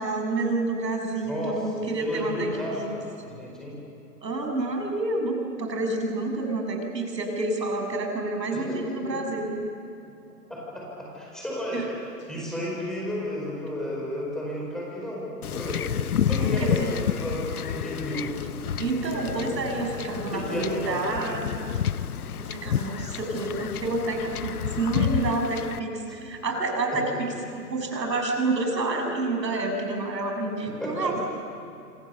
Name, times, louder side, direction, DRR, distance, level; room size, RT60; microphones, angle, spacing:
voice 1, 0.0-2.9 4.2-9.5 11.7-11.9 16.4-16.9 18.8-21.4 22.4-27.3 27.7-31.2, right 2 dB, 80° right, 3 dB, 7.0 m, -28 dB
voice 2, 1.2-1.5 2.0-3.8 8.5-9.2 10.5-11.8 12.3-15.2 15.5-16.0 16.2-18.3 19.3-19.6 20.3-21.4 26.1-26.2 26.9-27.2 30.6-31.1, equal, ahead, -4 dB, 4.9 m, -33 dB
Wind / Ocean / Boat Water vehicle, 15.4-25.8, left 9 dB, 60° left, 0.9 m, -30 dB
27.0 x 26.0 x 7.1 m, 2.7 s
hypercardioid pair, 160°, 50 cm